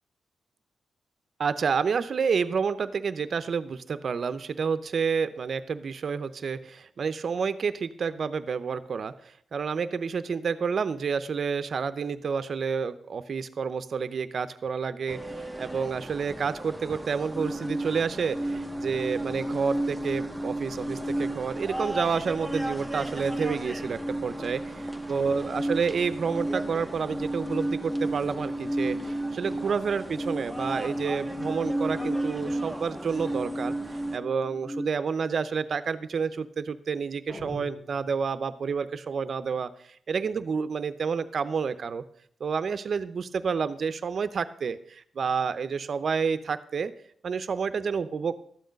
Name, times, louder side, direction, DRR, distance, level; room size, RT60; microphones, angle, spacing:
voice 1, 1.4-24.6 25.1-42.0 42.4-46.9 47.2-48.4, right 6 dB, 55° right, 13 dB, 0.7 m, -29 dB
sound 1, 15.1-34.2, right 1 dB, 5° right, 0.9 m, -39 dB
sound 2, 17.3-34.9, right 1 dB, 15° left, 1.3 m, -33 dB
sound 3, 37.3-38.7, equal, 40° left, 2.4 m, -43 dB
12.5 x 7.9 x 5.2 m, 0.63 s
cardioid pair, 100°, 0 cm